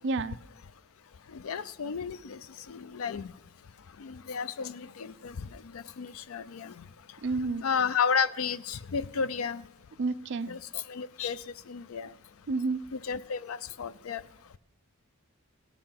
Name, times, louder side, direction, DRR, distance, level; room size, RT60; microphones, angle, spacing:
voice 1, 0.0-0.4 7.2-7.6 10.0-10.5 12.5-12.8, right 3 dB, 60° right, 0.5 m, -30 dB
voice 2, 1.3-3.3 4.0-9.7 10.5-12.1 12.9-14.2, left 6 dB, 85° left, 0.5 m, -33 dB
16.5 x 6.8 x 5.7 m
head